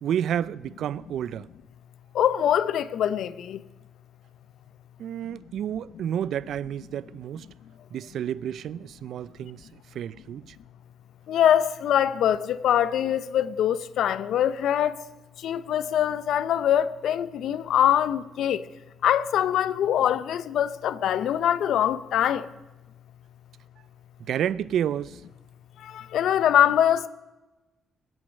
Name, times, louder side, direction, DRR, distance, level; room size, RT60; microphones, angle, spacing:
voice 1, 0.0-1.5 5.0-7.5 7.9-10.6 24.2-25.2, right 10 dB, 70° right, 0.4 m, -30 dB
voice 2, 2.1-3.6 11.3-15.0 15.4-18.6 19.0-22.4 25.9-27.1, left 10 dB, 75° left, 0.7 m, -23 dB
22.5 x 8.8 x 6.4 m
cardioid pair, 90°, 0 cm